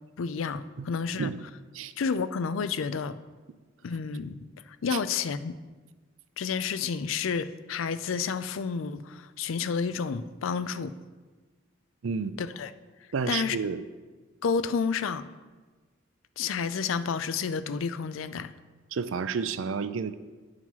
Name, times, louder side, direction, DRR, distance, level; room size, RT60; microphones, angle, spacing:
voice 1, 0.2-1.3 2.0-3.2 3.8-4.3 4.8-5.6 6.4-11.0 12.4-12.7 13.3-13.6 14.4-15.2 16.4-18.5, left 5 dB, 85° left, 13 dB, 0.4 m, -30 dB
voice 2, 0.8-1.4 1.7-1.9 4.9-5.0 12.0-12.4 13.1-13.8 18.9-20.1, right 5 dB, 80° right, 13 dB, 0.5 m, -31 dB
9.4 x 4.9 x 5.6 m, 1.3 s
head